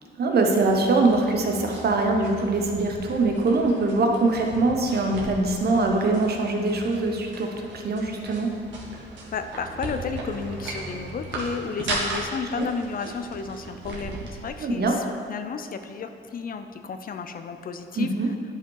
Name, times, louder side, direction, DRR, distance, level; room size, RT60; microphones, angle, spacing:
voice 1, 0.2-8.5 12.6-12.7 14.6-15.0 18.0-18.3, right 3 dB, 55° right, 2 dB, 1.2 m, -23 dB
sound 1, 0.5-14.5, right 2 dB, 70° right, 1.9 m, -37 dB
voice 2, 9.3-18.3, left 5 dB, 45° left, 8 dB, 0.6 m, -32 dB
10.0 x 5.5 x 4.8 m, 2.4 s
cardioid pair, 90°, 20 cm